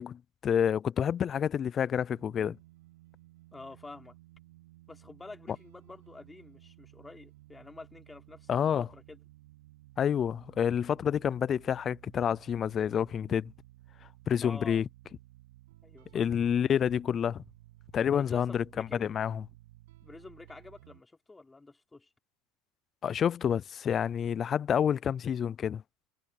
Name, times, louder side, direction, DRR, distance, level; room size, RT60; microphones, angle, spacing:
voice 1, 0.0-2.6 8.5-8.9 10.0-13.5 14.3-14.9 16.1-17.4 17.9-19.5 23.0-25.8, left 8 dB, 30° left, 0.4 m, -28 dB
sound 1, 2.1-21.0, right 18 dB, 85° right, 7.8 m, -56 dB
voice 2, 3.5-4.2 4.9-9.2 14.4-14.8 15.8-16.2 18.1-19.1 20.0-22.1, left 3 dB, 10° left, 4.0 m, -48 dB
supercardioid pair, 120°, 0 cm